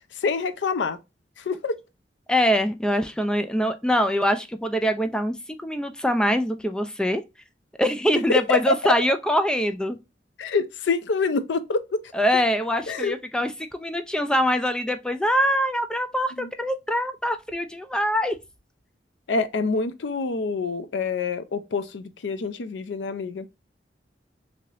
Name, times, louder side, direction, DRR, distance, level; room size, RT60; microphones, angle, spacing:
voice 1, 0.2-1.0 1.4-1.7 8.3-8.6 8.8-8.9 10.4-12.0 12.9-13.1 16.4-16.5 19.3-23.5, left 4 dB, 85° left, 0.5 m, -26 dB
voice 2, 2.3-7.2 7.8-10.0 12.1-18.4, equal, 5° left, 0.3 m, -24 dB
3.2 x 2.8 x 2.5 m
head